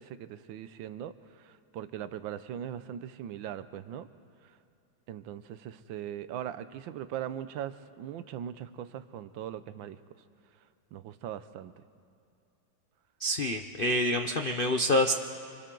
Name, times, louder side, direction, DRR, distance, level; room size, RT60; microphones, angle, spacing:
voice 1, 0.0-4.1 5.1-10.0 10.9-11.7, right 10 dB, 80° right, 13 dB, 1.5 m, -40 dB
voice 2, 13.2-15.1, left 1 dB, 60° left, 5 dB, 0.5 m, -27 dB
27.0 x 26.0 x 3.9 m, 2.6 s
omnidirectional pair, 2.1 m